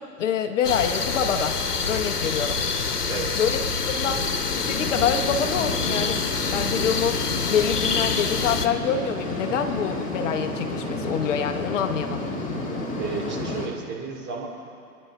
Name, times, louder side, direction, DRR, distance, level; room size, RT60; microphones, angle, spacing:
voice 1, 0.2-1.6 1.9-2.6 3.4-4.3 4.6-6.2 6.5-7.2 7.5-12.2, left 7 dB, 50° left, 7 dB, 0.9 m, -26 dB
sound 1, 0.6-8.7, left 5 dB, 80° left, 1.2 m, -26 dB
sound 2, 2.0-13.7, left 2 dB, 15° left, 2.0 m, -32 dB
voice 2, 13.0-14.5, right 5 dB, 25° right, -1 dB, 2.4 m, -32 dB
25.5 x 10.5 x 3.6 m, 2.4 s
figure-of-eight pair, 110°, 46 cm